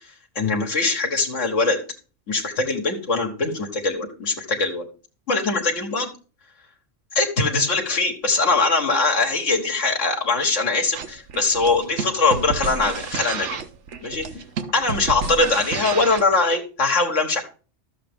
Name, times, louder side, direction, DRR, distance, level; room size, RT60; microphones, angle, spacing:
voice 1, 0.4-1.8 2.3-4.8 5.3-6.1 7.2-13.6 14.0-14.4 14.7-17.4, left 3 dB, 75° left, 1 dB, 1.7 m, -22 dB
sound 1, 10.9-16.3, right 6 dB, 70° right, 1.2 m, -31 dB
12.0 x 7.5 x 3.5 m, 0.36 s
omnidirectional pair, 1.3 m